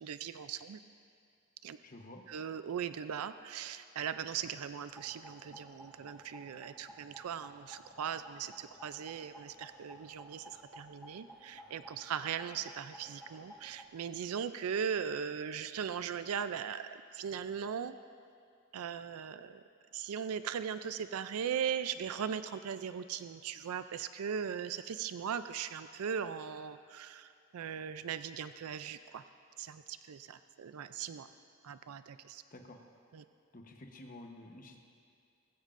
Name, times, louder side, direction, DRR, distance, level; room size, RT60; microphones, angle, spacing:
voice 1, 0.0-0.8 1.6-1.8 2.3-17.9 18.7-19.6 19.9-29.2 29.6-31.3 31.6-32.4 33.1-33.2, right 7 dB, 85° right, 12 dB, 0.4 m, -39 dB
voice 2, 1.8-2.2 32.5-32.8 33.5-34.8, left 1 dB, 40° left, 3 dB, 1.0 m, -50 dB
sound 1, 4.9-13.8, equal, ahead, 1.0 m, -54 dB
19.0 x 15.5 x 2.5 m, 2.3 s
head